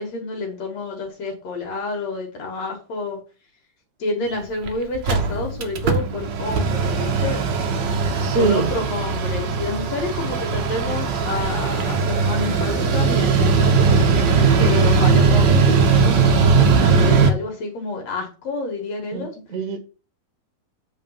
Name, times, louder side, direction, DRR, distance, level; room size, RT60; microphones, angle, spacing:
voice 1, 0.0-3.2 4.0-7.4 8.4-14.3 14.6-19.3, left 3 dB, 60° left, 2.8 m, -29 dB
Mechanical fan, 4.3-4.4 4.7-4.8 4.9-17.3, right 5 dB, 75° right, 1.0 m, -19 dB
voice 2, 8.2-8.7 19.1-19.8, right 4 dB, 50° right, 1.2 m, -23 dB
8.4 x 4.0 x 5.7 m
omnidirectional pair, 3.6 m